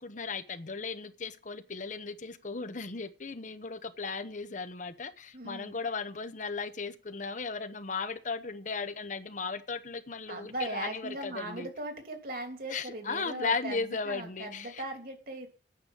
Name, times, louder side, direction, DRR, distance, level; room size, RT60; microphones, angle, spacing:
voice 1, 0.0-11.7 12.7-14.8, left 4 dB, 45° left, 0.9 m, -36 dB
voice 2, 5.3-5.8 10.3-13.8 14.0-15.5, right 2 dB, 55° right, 2.9 m, -39 dB
9.5 x 6.8 x 8.7 m
head